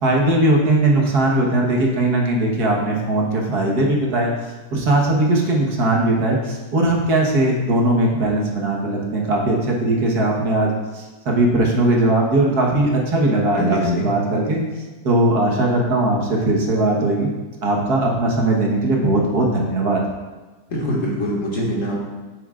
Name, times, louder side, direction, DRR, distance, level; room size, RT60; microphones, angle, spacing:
voice 1, 0.0-4.3 4.7-14.6 15.0-17.3 17.6-20.0, right 2 dB, 80° right, -1 dB, 1.9 m, -19 dB
voice 2, 13.5-14.1 20.7-22.0, equal, 55° left, -4 dB, 2.3 m, -23 dB
9.6 x 8.8 x 2.5 m, 1.2 s
omnidirectional pair, 1.6 m